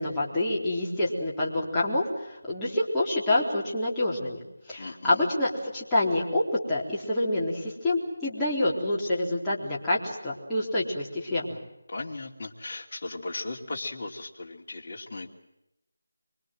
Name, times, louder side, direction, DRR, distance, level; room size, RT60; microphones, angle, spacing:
voice 1, 0.0-4.4 4.7-11.6, left 1 dB, 5° left, -9 dB, 3.9 m, -27 dB
voice 2, 4.8-5.2 11.9-15.3, left 2 dB, 40° left, -1 dB, 2.8 m, -37 dB
25.0 x 24.5 x 7.8 m, 0.88 s
figure-of-eight pair, 170°, 0 cm